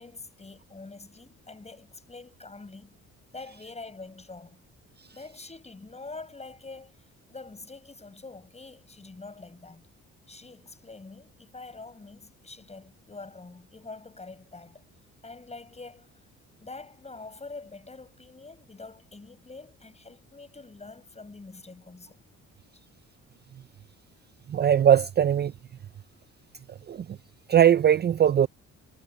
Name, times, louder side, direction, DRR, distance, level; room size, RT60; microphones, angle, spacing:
voice 1, 0.0-3.0 3.3-4.6 5.1-9.9 10.3-14.8 15.2-16.1 16.6-22.2 22.7-22.8, left 3 dB, 20° left, 6.5 m, -45 dB
voice 2, 24.5-25.5 26.9-27.2 27.5-28.5, right 10 dB, 35° right, 0.4 m, -20 dB
cardioid pair, 90°, 30 cm